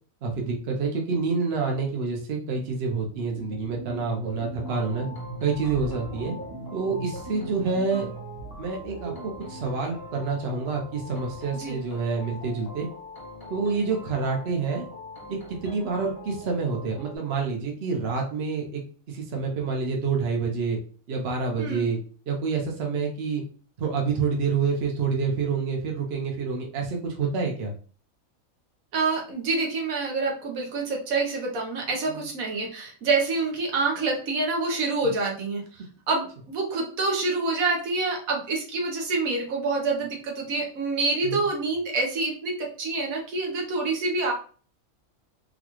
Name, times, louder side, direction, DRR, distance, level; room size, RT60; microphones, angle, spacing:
voice 1, 0.2-5.1 5.4-6.4 6.7-8.1 8.6-12.9 13.5-14.9 15.3-18.8 19.1-20.8 21.1-22.0 22.3-23.4 23.8-27.7 32.1-32.2 41.2-41.4, right 4 dB, 50° right, 0 dB, 0.9 m, -28 dB
sound 1, 3.0-10.0, right 2 dB, 25° right, 0.6 m, -40 dB
sound 2, 4.6-17.2, left 2 dB, 35° left, 0.3 m, -43 dB
voice 2, 21.6-21.9 28.9-35.6 36.1-44.3, right 3 dB, 75° right, 0 dB, 1.3 m, -27 dB
4.0 x 2.3 x 3.0 m, 0.41 s
omnidirectional pair, 1.5 m